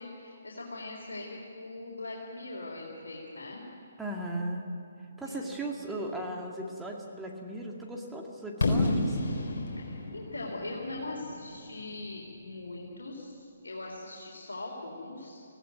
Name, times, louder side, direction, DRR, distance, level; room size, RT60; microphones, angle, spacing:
voice 1, 0.0-3.6 5.2-5.8 9.8-15.4, left 2 dB, 75° left, -3 dB, 3.9 m, -41 dB
voice 2, 4.0-4.7 5.2-9.2, right 1 dB, 5° right, -1 dB, 2.2 m, -37 dB
Fireworks, 8.6-12.5, left 2 dB, 55° left, 4.0 m, -31 dB
19.5 x 16.5 x 9.3 m, 2.7 s
figure-of-eight pair, 140°, 0 cm